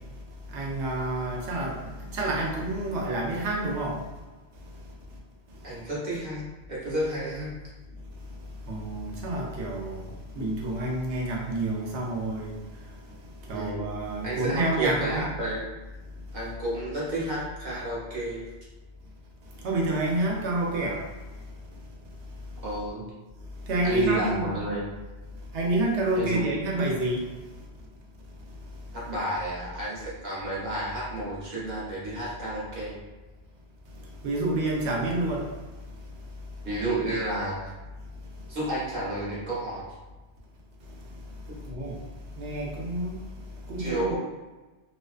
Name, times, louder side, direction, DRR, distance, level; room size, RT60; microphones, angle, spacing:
voice 1, 0.5-1.8 2.1-4.0 8.7-10.0 10.4-12.5 13.5-15.2 19.6-21.0 23.7-24.6 25.5-27.2 34.2-35.5 41.7-42.0 42.4-43.2 43.7-44.2, right 2 dB, 90° right, -1 dB, 0.9 m, -28 dB
voice 2, 5.6-7.5 13.5-13.8 14.2-15.6 16.3-18.4 22.6-23.0 23.8-24.9 26.1-26.6 28.9-33.0 36.6-37.7 38.5-39.9 41.5-41.6 43.8-44.2, right 1 dB, 45° right, -8 dB, 0.8 m, -31 dB
2.4 x 2.3 x 2.3 m, 1.2 s
omnidirectional pair, 1.1 m